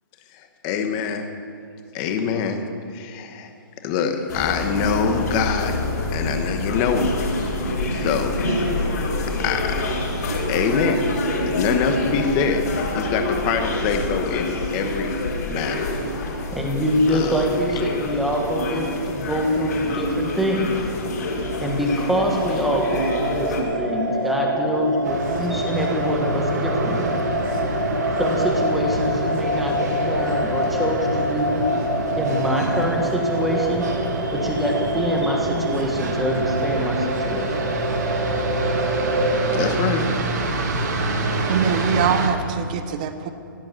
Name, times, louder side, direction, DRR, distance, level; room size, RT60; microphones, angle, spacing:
voice 1, 0.3-1.3 1.9-2.7 2.9-3.5 3.8-5.8 6.1-7.2 7.9-8.4 8.8-9.0 9.4-10.1 10.5-11.1 11.4-15.1 15.5-16.0 17.1-17.4 39.5-40.0, left 6 dB, 15° left, 6 dB, 1.1 m, -24 dB
sound 1, 4.3-23.6, left 1 dB, 45° left, 5.2 m, -27 dB
voice 2, 16.5-20.8 21.6-27.1 28.2-31.6 32.2-33.9 34.3-37.6, equal, ahead, -1 dB, 1.3 m, -24 dB
sound 2, 21.4-39.7, right 1 dB, 85° right, 3.8 m, -26 dB
sound 3, 25.0-42.3, right 2 dB, 50° right, 2.2 m, -27 dB
voice 3, 41.5-43.3, right 7 dB, 20° right, 9 dB, 0.7 m, -23 dB
16.0 x 12.0 x 7.6 m, 2.5 s
hypercardioid pair, 175°, 12 cm